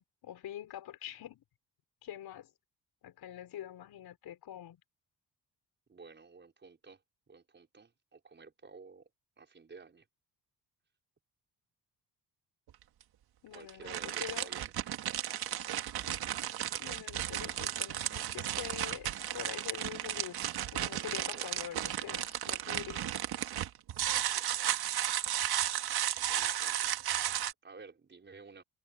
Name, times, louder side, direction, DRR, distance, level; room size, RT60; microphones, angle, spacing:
voice 1, 0.0-1.4 2.0-2.5 3.0-4.8 13.4-14.5 16.0-16.2 16.8-20.4 20.7-23.1, left 11 dB, 70° left, 5.7 m, -45 dB
voice 2, 5.9-7.0 7.3-9.1 9.4-10.0 13.5-15.1 21.2-21.9 24.1-24.7 26.2-27.0 27.6-28.6, right 4 dB, 25° right, 5.4 m, -53 dB
sound 1, 12.7-12.8 13.5-27.5, right 11 dB, 70° right, 1.9 m, -34 dB
cardioid pair, 145°, 40 cm